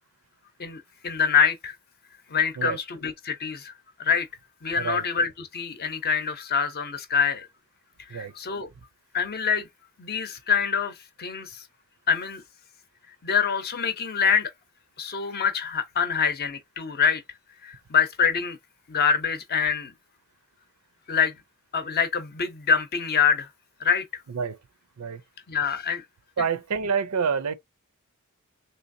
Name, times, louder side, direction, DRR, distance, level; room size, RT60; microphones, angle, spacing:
voice 1, 0.6-1.7 2.3-3.7 4.0-4.3 4.6-7.5 8.1-8.7 9.1-9.7 10.0-11.6 12.1-12.4 13.2-14.5 15.0-17.2 17.6-18.6 18.9-19.9 21.1-21.4 21.7-23.5 23.8-24.1 25.5-26.0, left 6 dB, 45° left, 0.6 m, -25 dB
voice 2, 26.4-27.5, right 6 dB, 90° right, 0.5 m, -27 dB
3.3 x 2.8 x 2.6 m
head